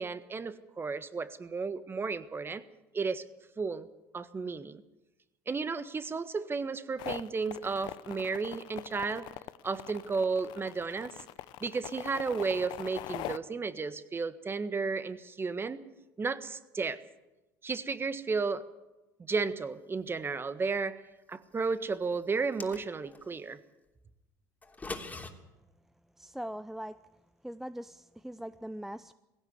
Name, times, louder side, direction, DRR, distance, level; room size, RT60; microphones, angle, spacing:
voice 1, 0.0-2.6 2.9-3.3 3.6-3.9 4.1-4.8 5.5-9.3 9.6-11.2 11.6-15.9 16.2-17.0 17.6-18.6 19.2-21.0 21.3-23.6, right 4 dB, 25° right, 12 dB, 1.5 m, -33 dB
sound 1, 7.0-13.4, left 16 dB, 65° left, 0.8 m, -42 dB
sound 2, 22.3-23.2 24.6-25.3, left 3 dB, 20° left, 3.1 m, -41 dB
voice 2, 26.2-27.0 27.4-29.1, equal, 5° right, 13 dB, 0.6 m, -41 dB
19.0 x 17.0 x 8.3 m, 1.0 s
hypercardioid pair, 75°, 8 cm